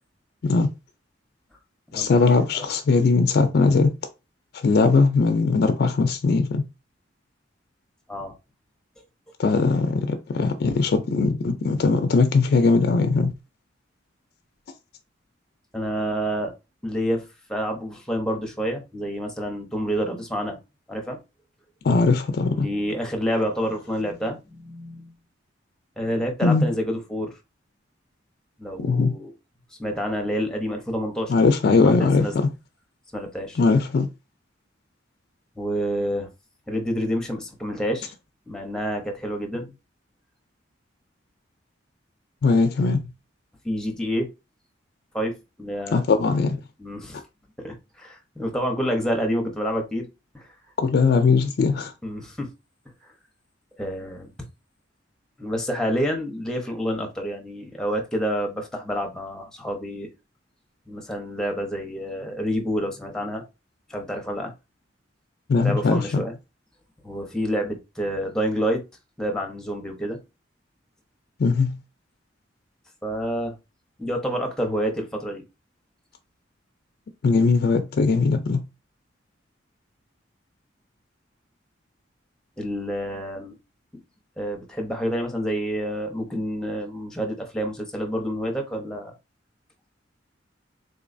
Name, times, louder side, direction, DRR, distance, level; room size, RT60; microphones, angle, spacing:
voice 1, 1.9-4.0 4.5-6.6 9.4-13.3 21.8-22.7 26.4-26.7 28.8-29.2 31.3-32.5 33.6-34.1 42.4-43.0 45.9-46.6 50.8-51.9 65.5-66.2 71.4-71.8 77.2-78.7, left 4 dB, 55° left, 0.4 m, -20 dB
voice 2, 15.7-16.5 16.8-20.6 20.9-21.2 22.5-25.1 26.0-27.4 28.6-29.3 29.8-31.3 31.8-32.3 33.1-33.6 35.6-36.3 36.7-38.1 38.5-39.7 43.6-44.3 45.1-46.0 46.8-47.2 47.6-50.1 50.3-50.5 52.0-52.5 53.0-53.1 53.8-54.3 55.4-60.1 60.9-63.4 63.9-64.5 65.6-66.3 67.0-68.8 69.2-70.2 73.0-73.6 74.0-75.4 82.6-83.6 84.4-89.1, equal, 5° left, 0.7 m, -28 dB
3.8 x 3.0 x 2.5 m
head